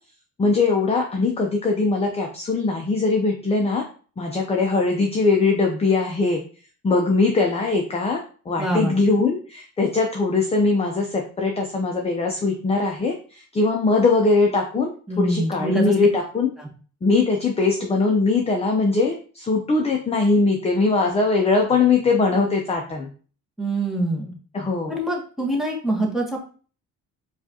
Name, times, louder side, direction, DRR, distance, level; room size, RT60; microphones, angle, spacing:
voice 1, 0.4-3.8 4.2-6.4 6.8-8.2 8.5-14.9 15.2-16.5 17.0-23.1 24.5-25.0, left 3 dB, 20° left, 1 dB, 0.5 m, -21 dB
voice 2, 8.6-9.0 15.1-15.9 16.6-16.7 23.6-24.3 24.9-26.4, right 1 dB, ahead, -2 dB, 1.1 m, -24 dB
4.6 x 2.5 x 2.7 m, 0.40 s
cardioid pair, 105°, 31 cm